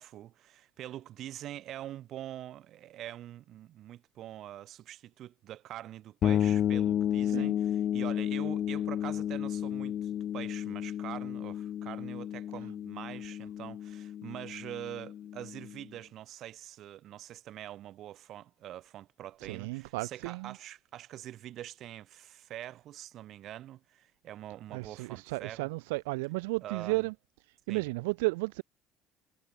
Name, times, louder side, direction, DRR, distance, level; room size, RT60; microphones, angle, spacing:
voice 1, 0.0-25.7 26.6-27.1 27.7-27.8, right 12 dB, 55° right, 6.6 m, -44 dB
sound 1, 6.2-15.8, left 10 dB, 50° left, 2.9 m, -32 dB
voice 2, 19.4-20.6 24.7-27.1 27.7-28.6, right 25 dB, 70° right, 5.2 m, -33 dB
figure-of-eight pair, 55°, 0 cm